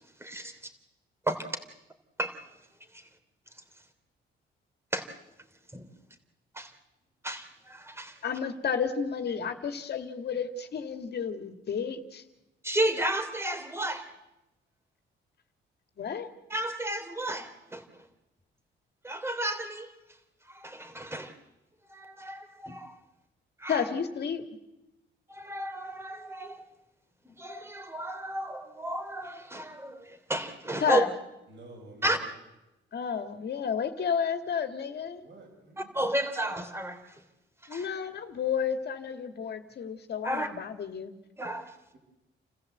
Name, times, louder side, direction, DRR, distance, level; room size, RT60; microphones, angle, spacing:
voice 1, 0.2-0.5 1.3-1.5 2.2-2.4 2.9-3.1 4.9-5.0 5.7-5.9 6.5-6.7 7.2-8.2 12.6-14.1 16.5-17.8 19.0-19.9 20.5-21.3 21.9-23.0 23.6-23.9 25.3-26.6 27.2-31.0 32.0-32.2 35.8-37.2 37.7-37.9 40.2-40.5 41.4-41.7, right 1 dB, 10° right, 7 dB, 3.3 m, -32 dB
voice 2, 8.2-12.2 16.0-16.3 23.7-24.5 30.8-31.1 32.9-35.2 37.7-41.2, left 7 dB, 55° left, 7 dB, 2.2 m, -31 dB
voice 3, 31.5-32.3 35.2-36.0, right 2 dB, 65° right, 2 dB, 6.3 m, -50 dB
29.5 x 15.0 x 8.0 m, 0.97 s
cardioid pair, 90°, 20 cm